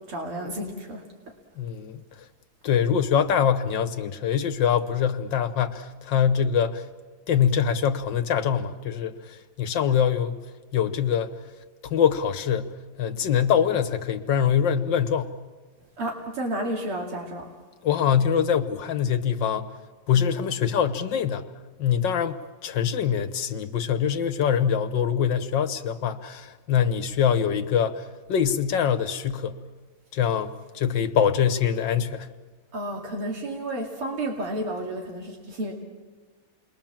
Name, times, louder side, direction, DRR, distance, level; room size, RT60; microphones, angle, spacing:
voice 1, 0.1-1.0 16.0-17.5 32.7-35.7, right 1 dB, 80° right, 0 dB, 3.3 m, -31 dB
voice 2, 1.6-2.0 2.6-6.8 7.3-10.3 10.7-11.3 11.8-12.7 13.0-15.4 17.8-19.7 20.1-21.4 21.8-29.6 30.1-32.3, left 8 dB, 60° left, 9 dB, 1.6 m, -24 dB
29.0 x 21.5 x 7.4 m, 1.4 s
omnidirectional pair, 2.4 m